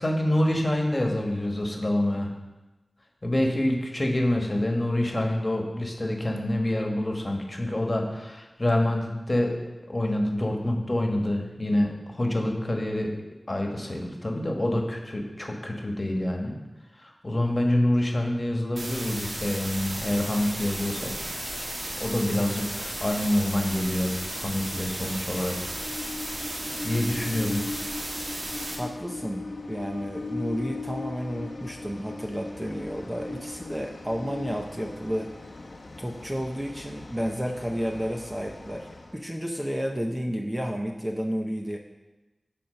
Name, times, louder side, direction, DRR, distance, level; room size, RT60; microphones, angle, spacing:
voice 1, 0.0-2.3 3.2-9.6 9.9-13.1 13.5-16.6 17.0-21.1 22.0-25.8 26.8-27.6, left 1 dB, 30° left, 1 dB, 1.5 m, -26 dB
sound 1, 18.8-28.8, right 1 dB, 85° right, 1.8 m, -34 dB
Train, 19.7-39.2, left 3 dB, 65° left, 0.9 m, -40 dB
voice 2, 28.8-35.3 36.0-41.8, equal, 10° right, 2 dB, 0.7 m, -31 dB
10.5 x 4.2 x 5.6 m, 1.1 s
wide cardioid pair, 70°, 0 cm